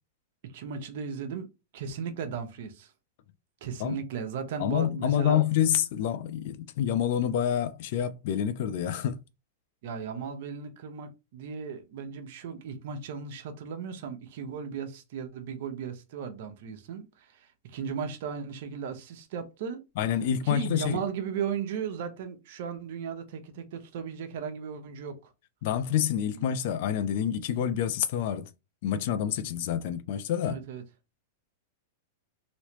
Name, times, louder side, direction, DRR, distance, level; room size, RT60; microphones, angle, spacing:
voice 1, 0.4-1.5 1.7-2.9 3.6-5.4 9.8-19.8 20.4-25.3 30.4-30.8, right 6 dB, 60° right, 0.8 m, -36 dB
voice 2, 4.6-9.2 20.0-21.0 25.6-28.5 28.8-30.6, left 10 dB, 60° left, 0.4 m, -27 dB
3.1 x 2.9 x 2.9 m
hypercardioid pair, 135°, 0 cm